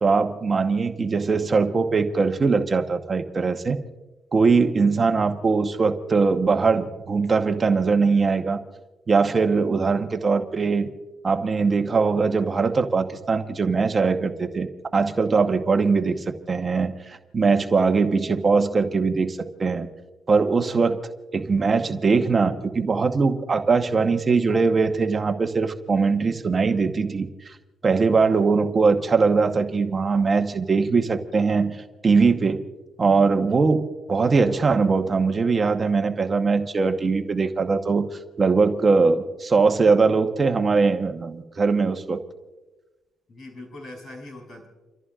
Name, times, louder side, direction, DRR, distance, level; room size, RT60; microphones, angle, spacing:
voice 1, 0.0-3.8 4.3-8.6 9.1-10.9 11.2-14.7 14.9-19.9 20.3-21.0 21.3-27.6 27.8-32.6 33.0-38.1 38.4-42.2, right 4 dB, 35° right, 5 dB, 1.1 m, -21 dB
voice 2, 43.3-44.7, left 2 dB, 45° left, 1 dB, 6.1 m, -41 dB
29.5 x 14.0 x 2.5 m, 1.2 s
cardioid pair, 90°, 0 cm